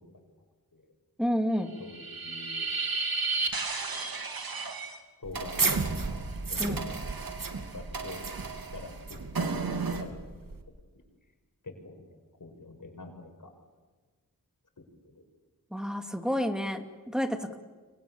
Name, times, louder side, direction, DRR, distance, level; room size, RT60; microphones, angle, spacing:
voice 1, 1.2-1.7 6.6-6.8 15.7-17.6, equal, ahead, 6 dB, 2.6 m, -30 dB
sound 1, 1.7-5.0 5.3-10.0, right 4 dB, 85° right, 2.8 m, -34 dB
voice 2, 1.8-2.7 5.2-5.8 6.1-6.2 6.5-6.8 7.2-7.3 7.7-8.3 8.7-9.3 9.8-10.3 11.6-13.5 14.8-15.2, left 3 dB, 65° left, 3 dB, 6.4 m, -45 dB
sound 2, 5.2-10.6, right 4 dB, 70° right, 2.7 m, -34 dB
30.0 x 25.0 x 7.4 m, 1.4 s
wide cardioid pair, 65°, 35 cm